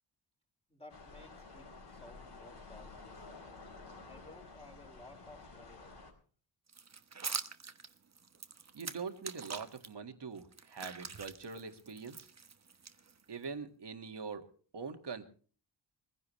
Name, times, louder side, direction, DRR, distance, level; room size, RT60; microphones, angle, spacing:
voice 1, 0.7-3.6 4.0-6.1, left 2 dB, 15° left, -1 dB, 4.6 m, -57 dB
sound 1, 0.9-6.1, left 3 dB, 65° left, 4.6 m, -52 dB
sound 2, 6.7-9.9 10.4-13.4, right 5 dB, 35° right, 1.1 m, -44 dB
voice 2, 8.7-12.3 13.3-14.5 14.7-15.2, right 5 dB, 65° right, 6 dB, 2.0 m, -43 dB
22.5 x 15.5 x 3.2 m, 0.42 s
wide cardioid pair, 140°, 45 cm